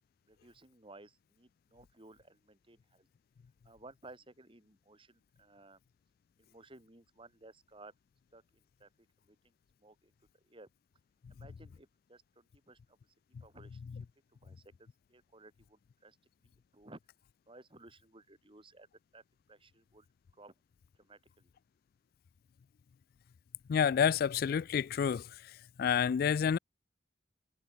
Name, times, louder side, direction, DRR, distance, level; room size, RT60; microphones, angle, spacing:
voice 1, 0.3-3.1 3.7-5.8 6.4-7.9 8.3-8.4 8.8-8.9 9.3-9.4 9.8-10.1 10.5-10.7 11.3-12.8 13.4-13.8 14.4-16.2 16.7-17.0 17.5-18.9 19.1-19.2 19.5-20.1 20.4-20.5 21.0-21.5, right 2 dB, 30° right, 3.6 m, -57 dB
voice 2, 23.7-25.2 25.8-26.6, left 7 dB, 60° left, 0.3 m, -28 dB
head